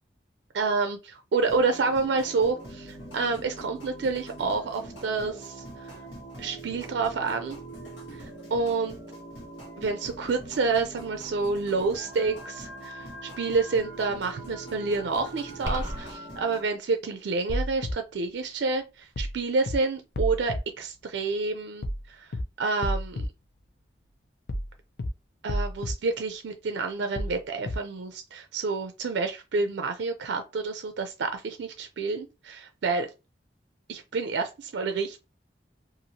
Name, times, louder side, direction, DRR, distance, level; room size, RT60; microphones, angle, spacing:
voice 1, 0.5-5.9 6.4-7.6 8.2-9.0 9.8-13.1 13.4-22.3 22.6-23.3 25.4-33.1 33.9-35.2, right 4 dB, 75° right, 0.4 m, -29 dB
sound 1, 1.4-16.6, right 1 dB, 85° left, 1.1 m, -42 dB
sound 2, 15.7-16.1, equal, 15° right, 0.9 m, -31 dB
sound 3, 17.5-17.9 19.2-19.4 19.7-19.8 20.2-20.6 21.8-22.0 22.3-22.4 22.8-23.3 24.5-24.7 25.0-25.1 25.5-25.9 27.2-27.4 27.7-27.8, equal, 60° left, 0.5 m, -30 dB
2.8 x 2.5 x 2.7 m
head